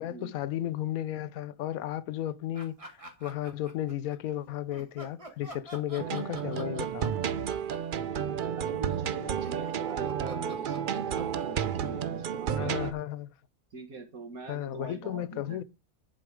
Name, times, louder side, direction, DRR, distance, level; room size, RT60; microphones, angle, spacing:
voice 1, 0.0-7.2 12.6-13.3 14.5-15.6, left 12 dB, 80° left, 1.1 m, -34 dB
sound 1, 2.5-4.2 4.7-13.0, right 1 dB, 25° right, 1.9 m, -48 dB
sound 2, 6.0-12.9, right 8 dB, 55° right, 0.5 m, -32 dB
voice 2, 8.6-12.9 13.7-15.6, right 3 dB, 85° right, 2.5 m, -43 dB
11.0 x 4.6 x 5.0 m
omnidirectional pair, 1.5 m